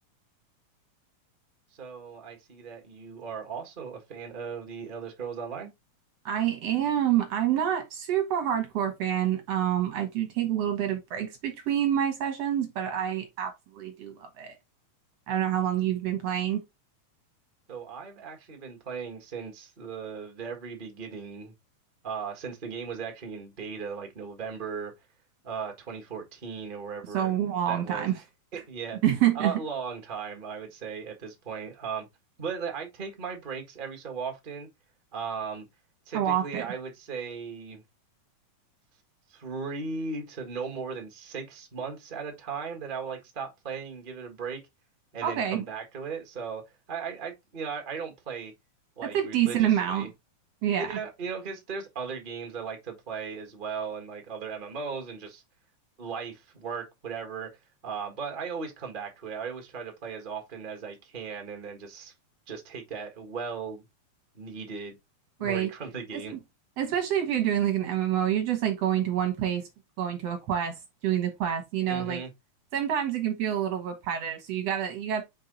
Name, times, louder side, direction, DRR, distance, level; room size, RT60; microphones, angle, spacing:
voice 1, 1.8-5.7 17.7-21.5 22.0-24.9 25.4-27.3 27.7-28.2 28.5-29.0 29.3-32.1 32.4-34.7 35.1-35.6 36.1-37.8 39.3-44.6 45.1-46.6 46.9-48.5 49.0-50.1 50.8-55.4 56.0-57.5 57.8-62.1 62.5-63.8 64.3-65.0 65.4-66.3 71.9-72.3, right 5 dB, 85° right, 0.4 m, -37 dB
voice 2, 6.2-14.6 15.3-16.6 27.1-28.2 29.0-29.5 36.1-36.7 45.2-45.6 49.1-50.1 50.6-50.9 65.4-65.7 66.3-66.4 66.8-69.7 70.0-70.8 71.0-72.2 72.7-75.2, right 10 dB, 65° right, 1.6 m, -27 dB
5.4 x 4.3 x 4.0 m
omnidirectional pair, 4.1 m